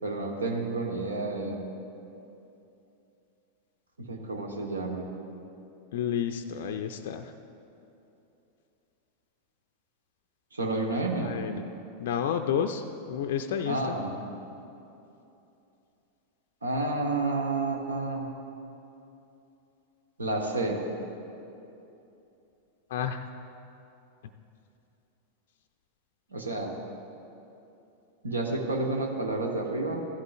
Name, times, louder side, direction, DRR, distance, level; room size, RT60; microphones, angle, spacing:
voice 1, 0.0-1.6 4.0-5.1 10.5-11.4 13.6-14.1 16.6-18.3 20.2-20.8 26.3-26.7 28.2-30.0, right 2 dB, 75° right, 1 dB, 1.2 m, -30 dB
voice 2, 5.9-7.3 11.2-11.6 12.0-14.0 22.9-23.3, left 8 dB, 55° left, 6 dB, 0.4 m, -30 dB
16.0 x 11.5 x 2.5 m, 2.8 s
figure-of-eight pair, 90°, 0 cm